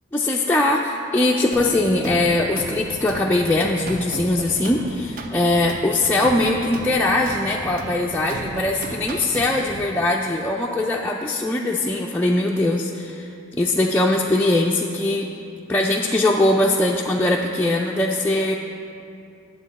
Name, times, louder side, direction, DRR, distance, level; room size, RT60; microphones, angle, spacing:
voice 1, 0.1-15.3 15.7-18.6, left 2 dB, 10° left, -2 dB, 0.3 m, -21 dB
sound 1, 1.5-9.9, right 2 dB, 45° right, 0.5 m, -35 dB
9.8 x 7.5 x 4.1 m, 2.5 s
head